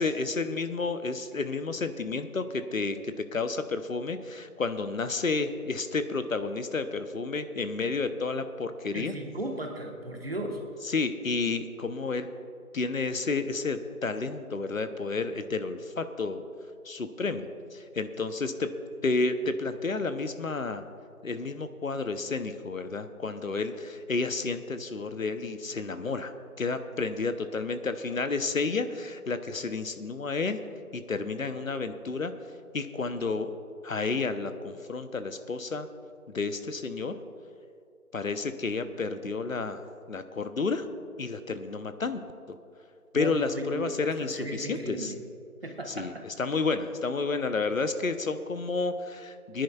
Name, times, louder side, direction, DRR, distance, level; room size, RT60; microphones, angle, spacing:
voice 1, 0.0-9.1 10.8-12.3 12.7-16.4 16.8-18.7 19.0-20.8 21.2-26.3 26.6-30.6 30.9-32.3 32.7-33.5 33.8-35.9 36.3-37.2 38.1-39.8 40.1-40.9 41.2-42.2 43.1-45.1 45.9-49.6, left 4 dB, 65° left, 10 dB, 0.8 m, -31 dB
voice 2, 8.9-10.6 43.1-43.9 44.2-45.2 45.6-46.2, right 1 dB, 40° right, 3 dB, 1.2 m, -36 dB
24.0 x 10.5 x 2.3 m, 2.5 s
figure-of-eight pair, 170°, 44 cm